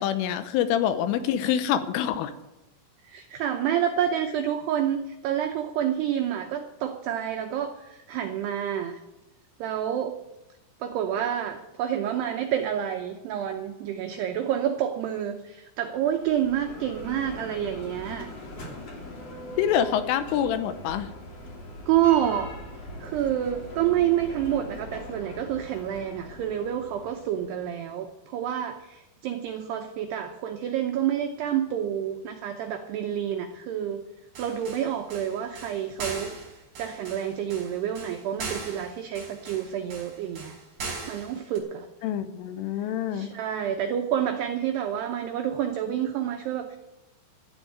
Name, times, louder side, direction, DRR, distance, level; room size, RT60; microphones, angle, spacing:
voice 1, 0.0-2.3 19.6-21.1 42.0-43.3, left 9 dB, 80° left, 10 dB, 3.3 m, -26 dB
voice 2, 3.0-9.0 9.6-10.2 10.8-18.3 21.9-22.5 23.0-34.0 34.4-36.4 36.8-40.6 41.1-41.9 43.1-46.8, right 10 dB, 85° right, 4 dB, 2.3 m, -28 dB
Bell, 15.9-27.7, left 1 dB, 40° left, 3.0 m, -41 dB
sound 1, 34.3-41.6, right 4 dB, 40° right, 4.3 m, -39 dB
13.0 x 10.5 x 8.6 m, 0.96 s
omnidirectional pair, 5.9 m